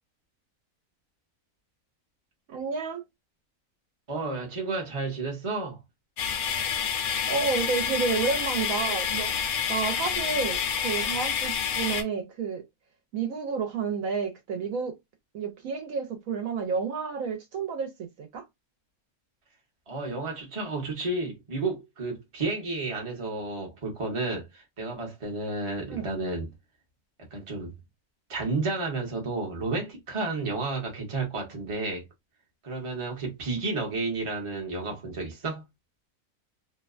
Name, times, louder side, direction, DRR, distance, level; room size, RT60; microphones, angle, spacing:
voice 1, 2.5-3.0 7.3-9.3 9.7-12.7 13.1-15.0 15.3-18.4 25.9-26.1, right 5 dB, 70° right, 1.0 m, -30 dB
voice 2, 4.1-5.8 19.9-26.5 27.3-27.7 28.3-32.0 32.6-35.6, right 3 dB, 30° right, 0.7 m, -31 dB
sound 1, 6.2-12.0, left 7 dB, 80° left, 1.1 m, -28 dB
2.7 x 2.1 x 2.4 m
omnidirectional pair, 1.6 m